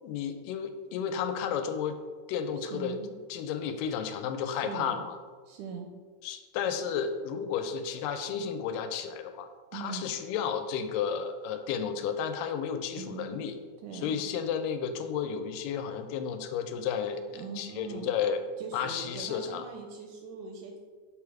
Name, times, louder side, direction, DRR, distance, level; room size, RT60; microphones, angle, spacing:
voice 1, 0.0-2.0 2.3-3.0 3.3-5.2 6.2-13.6 13.9-18.4 18.7-19.7, left 7 dB, 90° left, 9 dB, 2.2 m, -32 dB
voice 2, 2.7-3.2 4.4-5.0 5.5-5.9 9.7-10.1 13.0-13.3 13.8-14.2 17.3-18.1 18.6-20.8, right 5 dB, 80° right, 3 dB, 1.8 m, -41 dB
6.9 x 3.5 x 4.7 m, 1.5 s
omnidirectional pair, 3.8 m